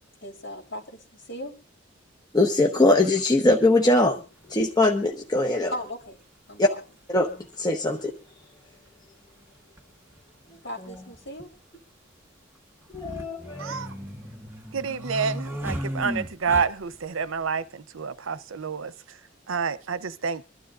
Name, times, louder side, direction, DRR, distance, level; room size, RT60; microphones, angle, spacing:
voice 1, 0.2-1.5 5.7-6.2 6.5-6.8 10.6-11.5, equal, 70° left, 3.4 m, -37 dB
voice 2, 2.3-4.2 4.5-5.7 6.6-6.7 7.1-7.3 7.6-8.1 12.9-13.7, left 2 dB, 20° left, 0.9 m, -21 dB
sound 1, 4.5-4.6 6.0-6.1 7.5-7.6 7.8-7.9 9.8-9.9 10.2-10.3 10.9-11.4 12.8-17.0, equal, 10° right, 1.5 m, -35 dB
voice 3, 13.6-13.9 14.7-18.9 19.5-20.4, right 5 dB, 85° right, 0.6 m, -28 dB
25.0 x 12.0 x 2.5 m
head